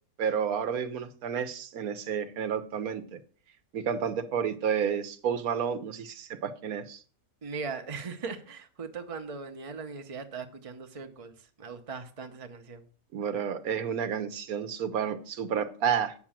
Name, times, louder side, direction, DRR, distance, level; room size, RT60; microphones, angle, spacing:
voice 1, 0.2-3.2 3.7-7.0 13.1-16.1, right 7 dB, 80° right, 9 dB, 1.3 m, -30 dB
voice 2, 7.4-11.3 11.6-12.9, right 5 dB, 25° right, 6 dB, 0.9 m, -39 dB
8.4 x 6.1 x 7.4 m, 0.42 s
omnidirectional pair, 1.5 m